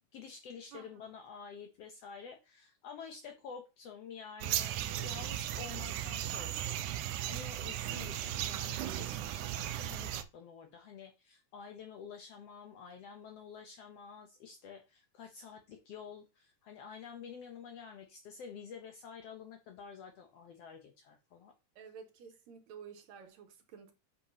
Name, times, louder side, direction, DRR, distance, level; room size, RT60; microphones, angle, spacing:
voice 1, 0.1-21.5, left 6 dB, 75° left, 1.5 m, -49 dB
voice 2, 0.7-1.1 21.8-23.9, right 6 dB, 70° right, 2.1 m, -52 dB
sound 1, 4.4-10.2, right 12 dB, 85° right, 2.1 m, -36 dB
8.7 x 5.8 x 2.7 m
omnidirectional pair, 3.5 m